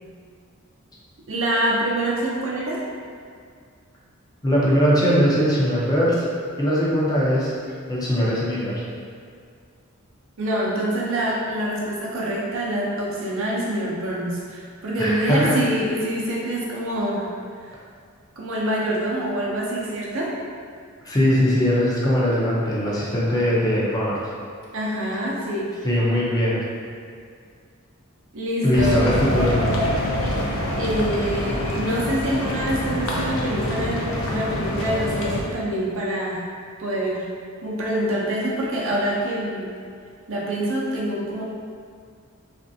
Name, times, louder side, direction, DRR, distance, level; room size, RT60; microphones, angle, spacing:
voice 1, 1.2-2.8 10.4-17.3 17.6-17.7 18.4-20.3 24.7-25.7 28.3-29.1 30.7-34.0 34.3-36.5 36.8-37.3 37.6-39.7 40.3-41.4, right 1 dB, 65° right, -5 dB, 0.6 m, -25 dB
voice 2, 4.4-6.3 6.6-7.5 7.9-8.7 15.0-15.6 21.0-24.2 25.8-26.6 28.6-29.7, equal, 20° left, -7 dB, 0.6 m, -20 dB
sound 1, 28.7-35.4, left 1 dB, 65° left, 0.5 m, -25 dB
3.2 x 2.5 x 2.6 m, 2.2 s
head